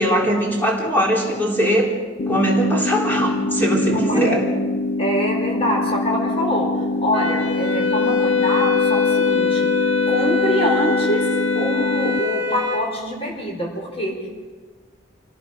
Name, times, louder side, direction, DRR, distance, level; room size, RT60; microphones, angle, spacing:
voice 1, 0.0-1.9 2.3-4.4, equal, 10° left, -2 dB, 3.9 m, -20 dB
sound 1, 2.2-12.2, left 2 dB, 55° left, 0.7 m, -24 dB
voice 2, 3.9-4.4 5.0-6.7 7.0-14.3, equal, 30° left, 0 dB, 4.5 m, -25 dB
Wind instrument woodwind instrument, 7.1-12.8, left 5 dB, 75° left, 2.3 m, -22 dB
25.5 x 18.0 x 6.1 m, 1.4 s
head